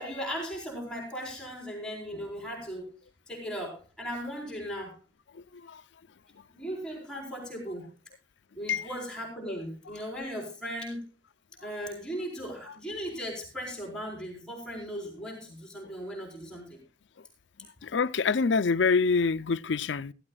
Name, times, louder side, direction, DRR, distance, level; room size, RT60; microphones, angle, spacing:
voice 1, 0.0-2.9 3.3-5.0 6.5-7.9 8.5-11.0 11.6-16.8, equal, 5° left, 4.4 m, -37 dB
voice 2, 17.8-20.1, left 4 dB, 70° left, 0.5 m, -25 dB
15.0 x 15.0 x 2.3 m
head